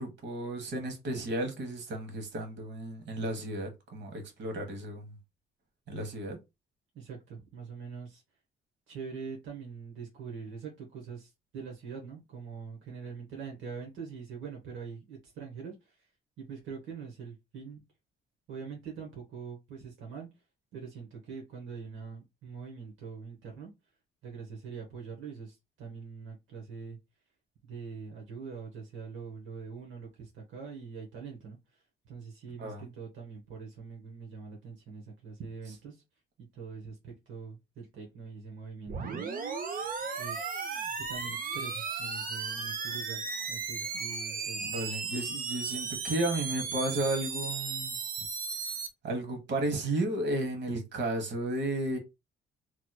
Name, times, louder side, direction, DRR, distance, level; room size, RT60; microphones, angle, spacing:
voice 1, 0.0-5.2 5.9-6.4 32.6-32.9 44.6-48.0 49.0-52.0, right 1 dB, 60° right, 1.2 m, -33 dB
voice 2, 6.9-8.2 8.9-16.1 16.4-17.8 18.5-20.3 20.7-23.7 24.2-27.0 27.6-36.0 36.4-39.5 40.2-40.4 41.0-45.0 48.2-48.3, right 5 dB, 80° right, 1.0 m, -43 dB
sound 1, 38.9-48.9, right 5 dB, 45° right, 0.7 m, -35 dB
3.0 x 2.9 x 2.2 m
cardioid pair, 90°, 20 cm